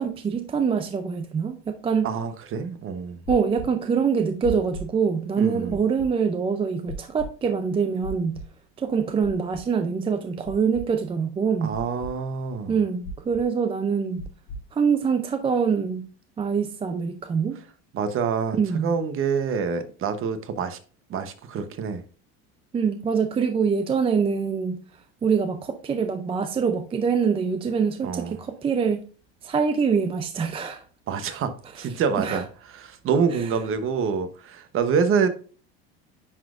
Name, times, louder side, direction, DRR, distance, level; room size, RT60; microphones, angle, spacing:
voice 1, 0.0-2.1 3.3-8.4 8.8-11.8 12.7-14.2 14.7-16.1 16.4-17.6 18.5-19.0 22.7-24.8 25.2-29.0 29.4-30.8 31.8-31.9 32.2-32.4 33.3-33.5, right 6 dB, 20° right, 0.4 m, -24 dB
voice 2, 2.0-3.2 5.4-5.8 11.6-12.8 17.9-20.8 21.1-22.0 28.0-28.3 31.1-35.3, right 6 dB, 40° right, 1.0 m, -26 dB
sound 1, 3.3-3.7 4.4-4.8 5.7-6.1 6.9-7.3 8.0-8.4 9.2-9.6 10.4-10.8 11.7-12.1 13.0-13.4 14.2-14.6, equal, 90° left, 1.7 m, -35 dB
10.0 x 4.0 x 2.5 m
supercardioid pair, 120°, 32 cm